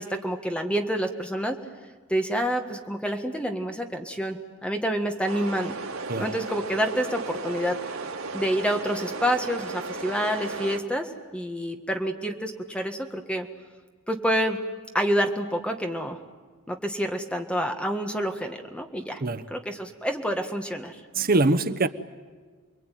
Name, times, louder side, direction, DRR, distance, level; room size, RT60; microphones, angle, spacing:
voice 1, 0.0-1.6 2.1-5.8 6.2-8.0 8.3-13.5 14.1-14.6 14.9-16.2 16.7-19.2 19.5-21.0, equal, 5° left, 5 dB, 1.7 m, -28 dB
sound 1, 5.3-10.8, right 3 dB, 80° right, 2.5 m, -35 dB
voice 2, 21.1-21.9, right 2 dB, 45° right, 9 dB, 1.1 m, -22 dB
29.0 x 22.0 x 9.3 m, 1.5 s
head